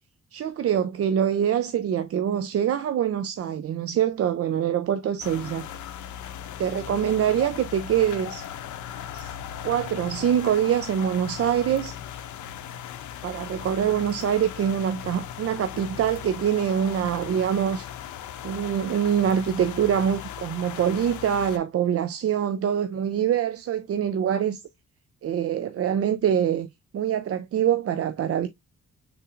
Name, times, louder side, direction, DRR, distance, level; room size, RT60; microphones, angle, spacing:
voice 1, 0.3-5.7 6.6-8.5 9.1-9.3 9.6-12.0 13.2-17.9 18.4-24.6 25.2-28.5, right 9 dB, 55° right, 0.4 m, -24 dB
sound 1, 5.2-21.6, left 9 dB, 90° left, 0.6 m, -38 dB
5.6 x 3.6 x 2.4 m
cardioid pair, 90°, 29 cm